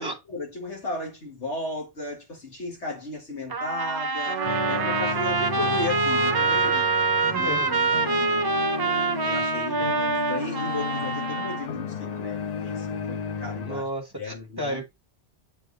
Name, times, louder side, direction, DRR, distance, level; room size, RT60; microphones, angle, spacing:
voice 1, 0.0-6.8 7.2-8.6 9.2-13.9 14.2-14.8, left 2 dB, 85° left, 2.2 m, -35 dB
Trumpet, 3.5-11.7, right 3 dB, 40° right, 0.3 m, -25 dB
Trumpet 2, 4.3-9.5, right 8 dB, 65° right, 0.8 m, -35 dB
sound 1, 4.4-13.8, left 6 dB, 45° left, 0.6 m, -34 dB
voice 2, 7.2-7.8 13.6-14.8, right 1 dB, 20° right, 1.3 m, -32 dB
7.5 x 3.5 x 3.9 m
omnidirectional pair, 1.1 m